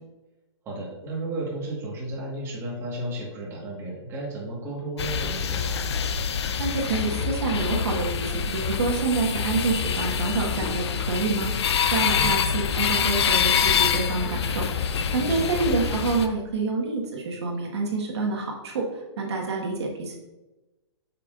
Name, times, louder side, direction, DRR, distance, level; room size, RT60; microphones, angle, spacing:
voice 1, 0.6-5.8 12.1-12.4 15.2-15.5, right 2 dB, 15° right, -4 dB, 1.6 m, -33 dB
sound 1, 5.0-16.3, left 7 dB, 65° left, 0.6 m, -26 dB
voice 2, 6.6-18.9 19.2-20.2, right 3 dB, 70° right, -1 dB, 1.5 m, -27 dB
8.3 x 5.7 x 2.5 m, 1.1 s
hypercardioid pair, 155°, 15 cm